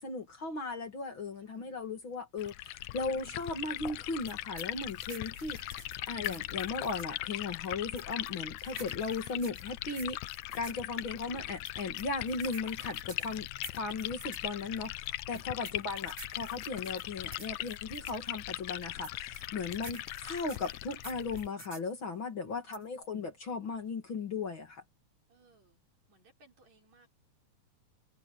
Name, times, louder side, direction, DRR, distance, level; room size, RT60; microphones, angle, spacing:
voice 1, 0.0-10.2 10.5-13.5 13.7-14.9 15.3-24.8, left 4 dB, 45° left, 2.8 m, -37 dB
voice 2, 1.4-1.7 3.0-3.8 5.5-6.4 13.7-13.8 15.7-16.1 19.7-19.9 22.5-23.1 25.3-25.8 26.1-27.1, right 3 dB, 65° right, 6.2 m, -67 dB
Liquid, 2.4-21.5, left 16 dB, 75° left, 1.7 m, -40 dB
sound 1, 4.3-7.2 8.0-10.8 11.6-14.5 15.3-18.2 19.0-21.9 22.7-23.0, right 2 dB, 15° right, 0.9 m, -50 dB
omnidirectional pair, 3.4 m